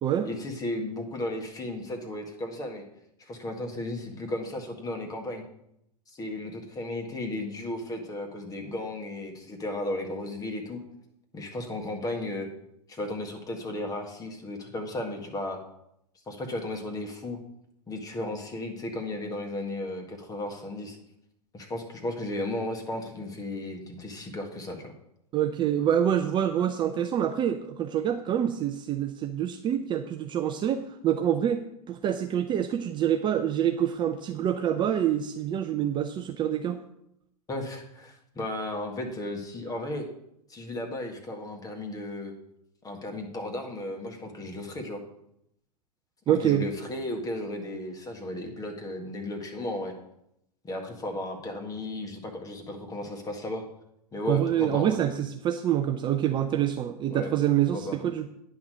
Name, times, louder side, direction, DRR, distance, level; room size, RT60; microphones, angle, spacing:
voice 1, 0.2-2.8 3.2-5.4 6.1-10.8 11.3-12.5 12.9-15.6 16.3-17.4 17.9-21.0 21.5-24.9 37.5-40.1 40.5-42.3 42.8-45.0 46.3-49.9 50.6-53.6 54.1-55.0 57.1-57.3 57.7-58.0, left 1 dB, 15° left, 3 dB, 1.8 m, -34 dB
voice 2, 25.3-36.8 46.3-46.6 54.3-58.3, right 10 dB, 25° right, 7 dB, 0.5 m, -26 dB
9.8 x 5.9 x 6.4 m, 0.78 s
figure-of-eight pair, 105°, 21 cm